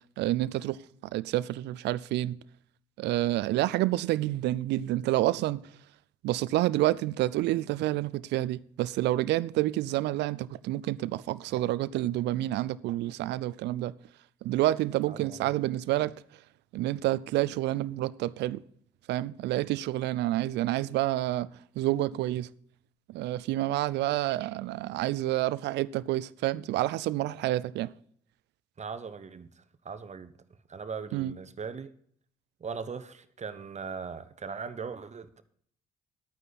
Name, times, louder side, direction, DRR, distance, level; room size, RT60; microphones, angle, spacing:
voice 1, 0.2-0.8 1.1-2.4 3.0-5.6 6.2-13.9 14.4-16.1 16.7-18.6 19.1-21.5 21.8-22.5 23.1-27.9 31.1-31.3, right 15 dB, 70° right, 0.5 m, -28 dB
voice 2, 15.0-15.6 28.8-30.3 30.7-31.9 32.6-35.4, right 5 dB, 40° right, 1.0 m, -39 dB
11.5 x 9.2 x 4.1 m
hypercardioid pair, 50°, 18 cm